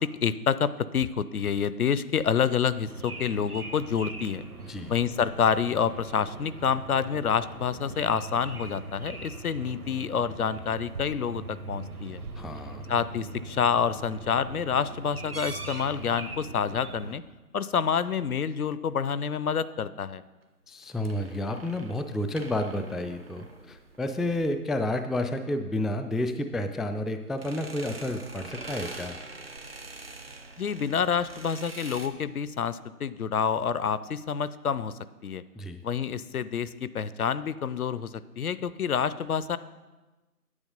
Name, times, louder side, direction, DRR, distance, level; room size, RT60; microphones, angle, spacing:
voice 1, 0.2-4.4 4.9-12.2 12.9-17.2 17.5-20.2 30.6-34.9 35.2-35.4 35.8-39.6, left 7 dB, 65° left, 16 dB, 0.6 m, -28 dB
sound 1, 2.9-17.2, right 3 dB, 65° right, 1.5 m, -41 dB
voice 2, 12.4-12.9 20.7-29.2 35.6-35.8, left 1 dB, ahead, 8 dB, 0.3 m, -30 dB
sound 2, 15.3-16.2 20.8-24.6 27.3-32.1, right 3 dB, 40° right, 0.7 m, -43 dB
9.8 x 8.3 x 5.2 m, 1.2 s
figure-of-eight pair, 165°, 47 cm